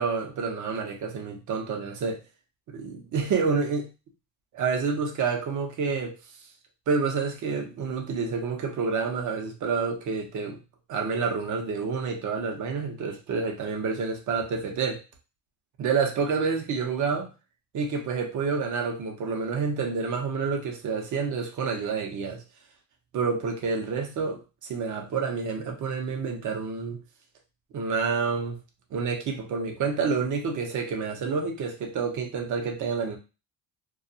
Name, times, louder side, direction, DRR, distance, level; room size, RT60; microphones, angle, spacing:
voice 1, 0.0-2.2 2.7-3.9 4.5-6.2 6.9-10.6 10.9-15.0 15.8-17.3 17.7-22.4 23.1-27.0 27.7-28.6 28.9-33.2, right 5 dB, 50° right, 3 dB, 0.7 m, -28 dB
2.3 x 2.3 x 2.6 m, 0.30 s
cardioid pair, 130°, 40 cm